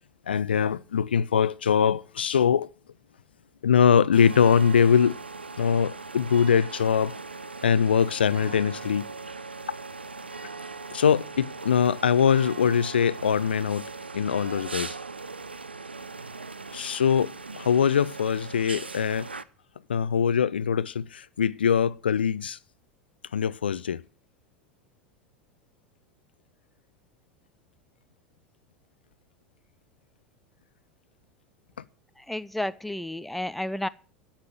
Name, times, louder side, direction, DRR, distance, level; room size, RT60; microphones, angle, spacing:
voice 1, 0.3-2.7 3.6-5.2 5.6-7.2 7.6-9.1 10.9-13.8 14.1-15.0 16.7-19.3 19.9-22.6 23.3-24.0, left 7 dB, 75° left, 0.5 m, -22 dB
sound 1, 4.1-19.4, right 4 dB, 85° right, 0.7 m, -39 dB
voice 2, 32.2-33.9, left 1 dB, ahead, 0.6 m, -31 dB
13.0 x 7.4 x 7.8 m
figure-of-eight pair, 80°, 6 cm